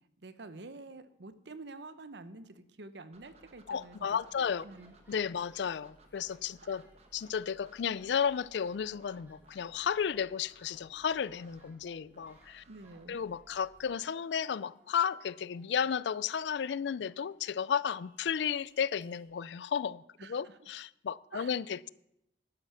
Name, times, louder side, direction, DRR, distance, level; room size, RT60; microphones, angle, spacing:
voice 1, 0.0-4.0 4.4-4.9 6.6-6.8 12.7-13.2 20.2-20.5 21.3-21.6, right 3 dB, 75° right, 0.8 m, -48 dB
sound 1, 3.1-14.0, right 2 dB, 35° right, 1.3 m, -62 dB
voice 2, 3.7-4.7 5.1-6.8 7.1-12.6 13.1-21.9, left 7 dB, 75° left, 0.4 m, -33 dB
sound 2, 4.6-19.2, right 1 dB, 10° right, 1.9 m, -67 dB
11.5 x 9.0 x 5.8 m
head